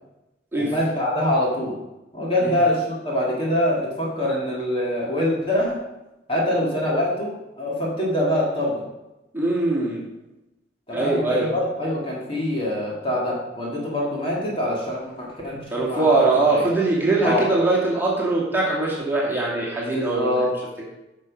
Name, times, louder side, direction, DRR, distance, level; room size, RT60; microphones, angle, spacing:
voice 1, 0.6-1.7 2.1-5.8 6.3-8.8 10.9-16.7 17.2-17.4 19.9-20.5, left 1 dB, 30° left, -4 dB, 2.4 m, -24 dB
voice 2, 9.3-10.0 10.9-11.5 15.7-20.3, right 2 dB, 10° right, -5 dB, 2.3 m, -21 dB
9.9 x 6.4 x 5.3 m, 0.98 s
head